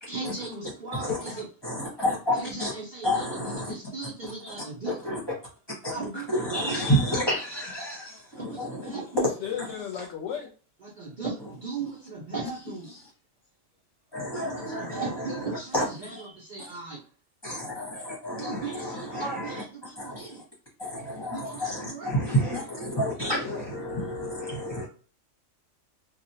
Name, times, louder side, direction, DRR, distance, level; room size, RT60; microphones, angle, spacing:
voice 1, 0.1-1.5 2.3-5.0 5.9-7.0 8.4-9.3 10.8-12.9 14.3-17.0 18.3-20.4 21.3-22.1, right 4 dB, 50° right, 0.7 m, -37 dB
voice 2, 1.6-2.7 3.0-3.6 4.9-5.2 5.8-5.9 6.3-8.9 14.1-15.4 15.7-15.8 17.4-19.6 20.0-20.3 20.8-24.8, equal, 20° left, 1.1 m, -29 dB
voice 3, 9.1-10.5, left 6 dB, 70° left, 0.9 m, -34 dB
2.9 x 2.4 x 2.6 m
omnidirectional pair, 1.3 m